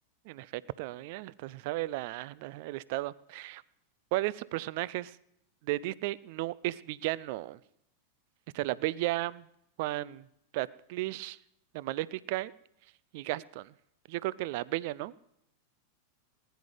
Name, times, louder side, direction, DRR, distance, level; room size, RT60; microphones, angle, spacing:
voice 1, 0.3-3.6 4.1-5.2 5.6-7.6 8.5-9.5 9.8-10.2 10.5-11.4 11.7-12.5 13.1-13.7 14.1-15.1, right 17 dB, 50° right, 21 dB, 0.4 m, -34 dB
19.5 x 10.0 x 5.0 m, 0.76 s
figure-of-eight pair, 90°, 0 cm